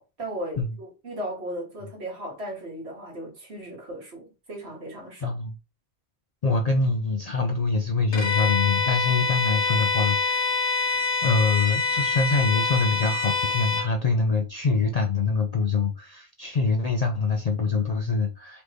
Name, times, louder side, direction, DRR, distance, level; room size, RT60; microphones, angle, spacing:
voice 1, 0.0-5.4, right 1 dB, 60° right, 1.9 m, -36 dB
voice 2, 5.2-5.5 6.4-18.6, left 4 dB, 50° left, 0.5 m, -25 dB
Bowed string instrument, 8.1-13.9, left 4 dB, 70° left, 1.5 m, -25 dB
4.3 x 3.2 x 3.1 m
omnidirectional pair, 1.2 m